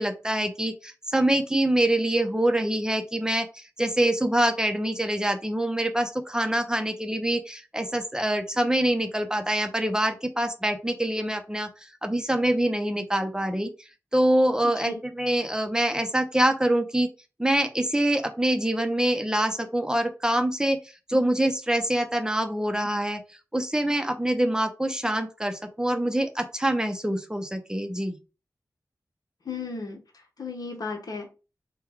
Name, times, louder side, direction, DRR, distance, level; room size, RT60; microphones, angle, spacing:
voice 1, 0.0-11.7 12.0-13.7 14.1-17.1 17.4-20.8 21.1-23.2 23.5-28.2, right 1 dB, 10° right, 7 dB, 0.6 m, -25 dB
voice 2, 14.6-15.0 29.4-30.0 30.4-31.3, left 4 dB, 70° left, 3 dB, 1.0 m, -34 dB
3.7 x 2.2 x 4.5 m, 0.31 s
wide cardioid pair, 65°, 7 cm